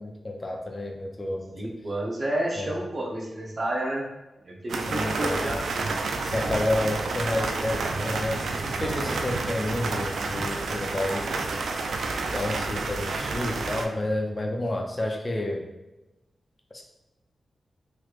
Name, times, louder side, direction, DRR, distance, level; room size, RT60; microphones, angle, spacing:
voice 1, 0.0-1.6 2.6-2.7 4.9-5.5 6.2-11.4 12.3-15.6 16.7-16.8, left 1 dB, 30° left, 2 dB, 0.5 m, -30 dB
voice 2, 1.6-4.1 4.4-5.6, right 1 dB, 45° right, -1 dB, 0.8 m, -30 dB
sound 1, 4.7-13.9, right 3 dB, 85° right, 0.3 m, -30 dB
3.2 x 3.1 x 2.4 m, 1.0 s
cardioid pair, 70°, 0 cm